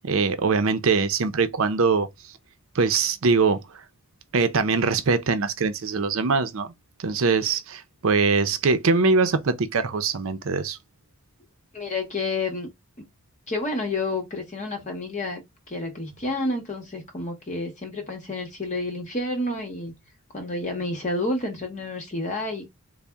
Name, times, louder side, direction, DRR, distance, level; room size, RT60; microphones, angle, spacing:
voice 1, 0.0-2.1 2.7-3.6 4.3-6.7 7.0-10.8, right 4 dB, 65° right, 0.6 m, -22 dB
voice 2, 11.7-12.7 13.0-13.1 13.5-15.4 15.7-19.9 20.3-22.7, left 2 dB, 30° left, 0.9 m, -29 dB
4.0 x 2.1 x 3.4 m
head